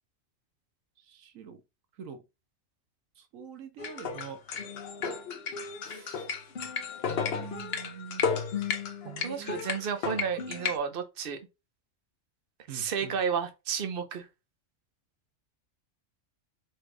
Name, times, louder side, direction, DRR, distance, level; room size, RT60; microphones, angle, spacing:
voice 1, 1.1-1.6 2.0-2.2 3.2-4.4 5.8-6.3 7.1-8.3 9.0-9.6 12.7-13.1, right 7 dB, 90° right, 1.2 m, -45 dB
sound 1, 3.8-10.8, left 6 dB, 55° left, 0.9 m, -33 dB
voice 2, 9.2-11.4 12.7-14.3, right 7 dB, 50° right, 0.9 m, -32 dB
4.4 x 2.4 x 4.7 m
omnidirectional pair, 1.3 m